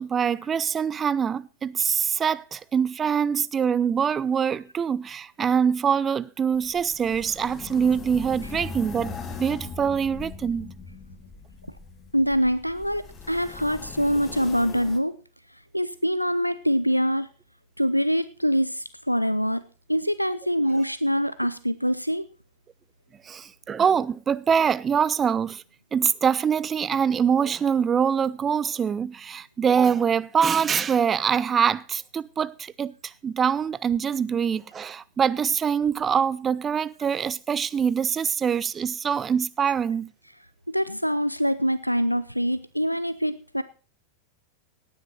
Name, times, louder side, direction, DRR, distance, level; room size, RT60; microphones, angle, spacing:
voice 1, 0.0-10.7 23.3-25.6 25.9-40.1, right 7 dB, 20° right, 0.6 m, -24 dB
sound 1, 6.5-15.0, left 5 dB, 25° left, 1.7 m, -40 dB
voice 2, 12.1-15.2 15.7-17.3 17.8-19.6 19.9-22.2 40.7-43.6, equal, 90° left, 0.6 m, -24 dB
18.0 x 9.4 x 4.3 m
figure-of-eight pair, 90°, 0 cm